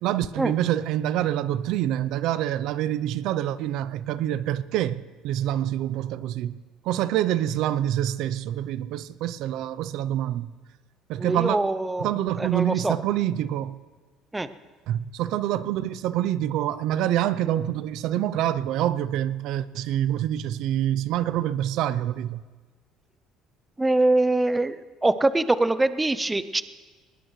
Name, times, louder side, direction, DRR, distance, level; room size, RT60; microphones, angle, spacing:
voice 1, 0.0-6.6 6.8-10.5 11.1-11.6 12.0-13.8 14.9-22.4, right 12 dB, 70° right, 0.5 m, -26 dB
voice 2, 11.2-12.1 12.4-13.0 14.3-14.5 23.8-26.6, right 2 dB, 10° right, 0.5 m, -23 dB
20.0 x 19.0 x 3.1 m
cardioid pair, 135°, 0 cm